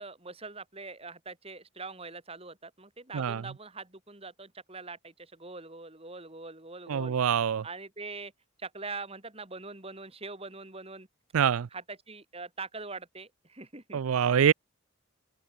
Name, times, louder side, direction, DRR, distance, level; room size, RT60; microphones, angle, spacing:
voice 1, 0.0-7.1 7.6-8.3 8.6-11.1 11.7-14.4, right 3 dB, 25° right, 3.2 m, -43 dB
voice 2, 6.9-7.6 11.3-11.7 13.9-14.5, right 8 dB, 85° right, 0.4 m, -25 dB
open air
head